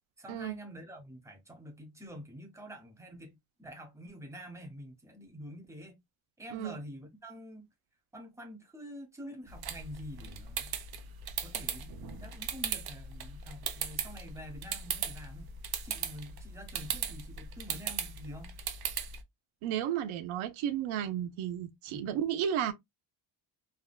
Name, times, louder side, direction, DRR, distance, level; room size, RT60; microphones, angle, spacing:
voice 1, 0.2-6.0 6.4-7.6 8.1-10.8 11.4-15.5 15.8-18.6 21.9-22.1, equal, 5° right, 0.9 m, -47 dB
sound 1, 9.5-19.2, right 7 dB, 50° right, 0.7 m, -38 dB
voice 2, 19.6-22.7, right 10 dB, 85° right, 0.7 m, -33 dB
3.5 x 2.2 x 2.3 m
cardioid pair, 130°, 47 cm